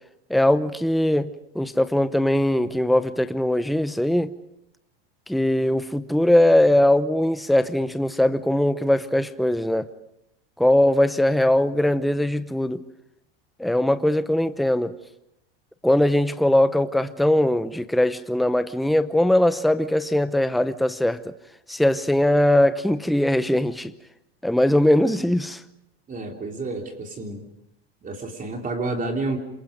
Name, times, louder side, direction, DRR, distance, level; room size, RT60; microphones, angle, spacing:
voice 1, 0.3-4.3 5.3-9.8 10.6-12.8 13.6-14.9 15.8-21.2 21.7-23.9 24.4-25.6, left 1 dB, ahead, 0.8 m, -20 dB
voice 2, 26.1-27.5 28.0-29.4, right 3 dB, 25° right, 3.4 m, -30 dB
27.5 x 23.0 x 5.1 m
supercardioid pair, 110°, 31 cm